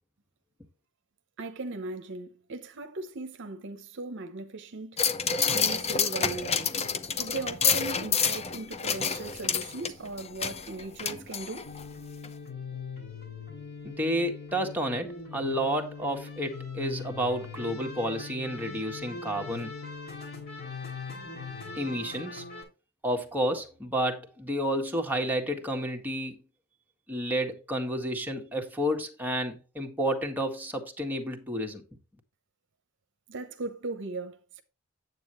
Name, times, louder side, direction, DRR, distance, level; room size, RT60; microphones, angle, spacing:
voice 1, 1.4-5.0 5.5-6.7 7.2-11.6 33.3-34.6, right 3 dB, 60° right, 0.8 m, -38 dB
sound 1, 5.0-11.9 12.2-12.3, left 6 dB, 30° left, 0.7 m, -29 dB
sound 2, 11.6-22.6, left 5 dB, 50° left, 6.1 m, -41 dB
voice 2, 13.8-19.7 21.7-22.4 23.0-26.4 27.1-31.8, equal, 10° right, 1.7 m, -30 dB
9.3 x 7.9 x 3.0 m
head